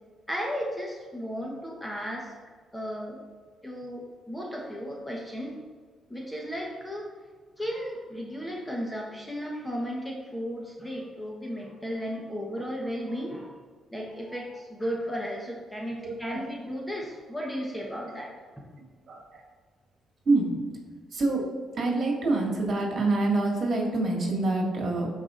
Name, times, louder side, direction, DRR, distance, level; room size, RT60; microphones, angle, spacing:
voice 1, 0.3-2.3 2.7-3.2 3.6-5.6 6.1-7.1 7.6-13.5 13.9-18.3, equal, 5° left, -1 dB, 1.2 m, -34 dB
voice 2, 16.0-16.4 17.4-17.5 17.9-18.0 19.1-19.4 20.2-20.6 21.1-21.4 21.7-25.1, right 2 dB, 50° right, -2 dB, 2.2 m, -26 dB
13.0 x 4.8 x 2.6 m, 1.5 s
cardioid pair, 90°, 0 cm